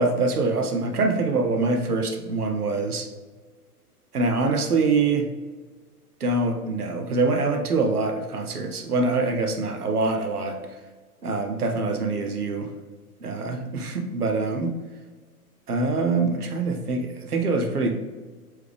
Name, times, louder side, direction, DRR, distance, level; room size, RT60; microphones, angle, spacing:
voice 1, 0.0-3.1 4.1-5.3 6.2-10.6 11.2-12.7 13.2-14.7 15.7-18.0, right 3 dB, 75° right, 4 dB, 0.9 m, -24 dB
4.6 x 3.5 x 3.4 m, 1.3 s
figure-of-eight pair, 115°, 46 cm